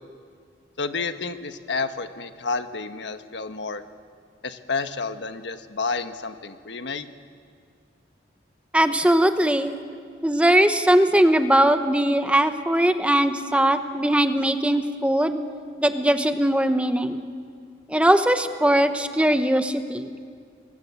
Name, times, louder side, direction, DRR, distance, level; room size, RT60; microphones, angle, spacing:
voice 1, 0.8-3.8 4.4-7.1, left 4 dB, 85° left, 8 dB, 1.3 m, -30 dB
voice 2, 8.7-9.7 10.2-15.4 15.8-17.2 17.9-20.1, right 1 dB, 5° right, 8 dB, 1.0 m, -20 dB
28.5 x 22.0 x 8.3 m, 2.1 s
head